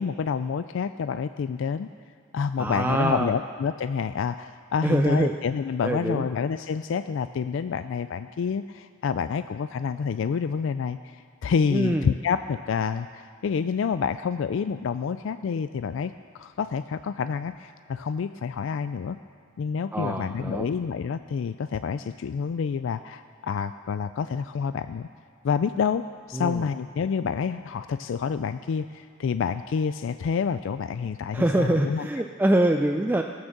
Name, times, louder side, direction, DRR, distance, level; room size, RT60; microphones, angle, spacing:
voice 1, 0.0-1.9 2.3-19.2 19.6-25.1 25.4-32.1, left 6 dB, 65° left, 11 dB, 0.3 m, -28 dB
voice 2, 2.6-3.3 4.8-5.3 5.8-6.3 11.7-12.1 19.9-20.7 26.3-26.7 31.3-33.2, right 1 dB, 10° right, 3 dB, 0.4 m, -24 dB
17.5 x 8.7 x 6.6 m, 2.3 s
head